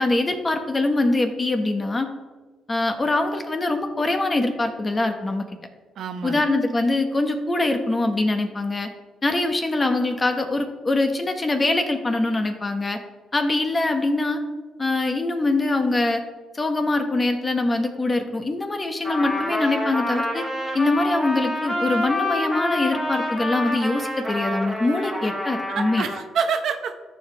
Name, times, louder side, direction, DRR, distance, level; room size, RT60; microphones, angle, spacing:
voice 1, 0.0-2.1 2.7-5.4 6.2-8.9 9.2-13.0 13.3-14.4 14.8-16.2 16.5-20.5 20.7-26.1, left 2 dB, 25° left, 6 dB, 1.1 m, -23 dB
voice 2, 6.0-6.4 25.7-27.0, right 6 dB, 70° right, 7 dB, 0.8 m, -27 dB
Trumpet, 19.0-26.3, left 1 dB, 10° left, 2.8 m, -27 dB
13.5 x 5.0 x 3.4 m, 1.3 s
cardioid pair, 90°, 0 cm